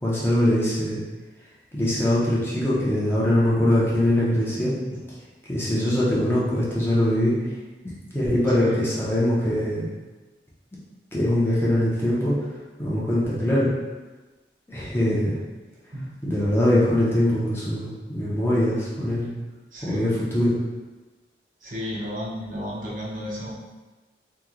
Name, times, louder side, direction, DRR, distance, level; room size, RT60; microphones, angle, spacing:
voice 1, 0.0-1.0 1.7-4.8 5.5-7.4 8.1-9.9 11.1-12.4 12.8-13.7 14.7-15.4 16.2-19.3 19.8-20.5, left 1 dB, 15° left, -7 dB, 0.6 m, -22 dB
voice 2, 19.7-20.1 21.6-23.5, equal, 45° right, -5 dB, 0.6 m, -33 dB
2.9 x 2.2 x 3.6 m, 1.2 s
head